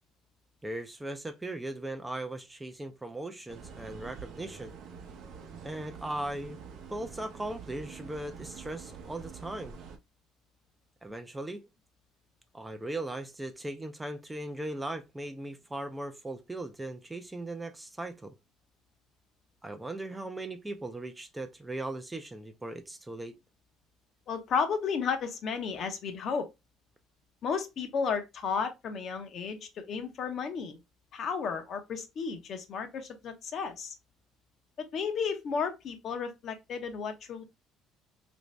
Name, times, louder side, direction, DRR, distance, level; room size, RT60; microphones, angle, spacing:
voice 1, 0.6-4.7 5.6-6.6 6.9-9.8 11.0-11.6 12.5-18.3 19.6-23.4, right 1 dB, 10° right, 0.4 m, -38 dB
sound 1, 3.5-10.0, right 6 dB, 60° right, 0.7 m, -46 dB
voice 2, 24.3-26.5 27.4-30.8 31.1-33.9 34.9-37.4, left 6 dB, 50° left, 0.7 m, -33 dB
3.1 x 2.6 x 3.1 m
cardioid pair, 120°, 0 cm